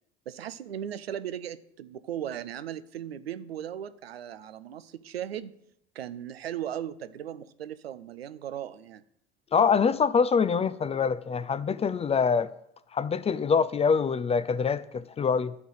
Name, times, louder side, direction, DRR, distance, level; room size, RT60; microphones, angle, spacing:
voice 1, 0.3-5.5 5.9-9.0, right 10 dB, 85° right, 0.5 m, -37 dB
voice 2, 9.5-12.5 12.9-15.6, left 6 dB, 20° left, 0.4 m, -25 dB
11.5 x 3.8 x 6.5 m
figure-of-eight pair, 60°, 30 cm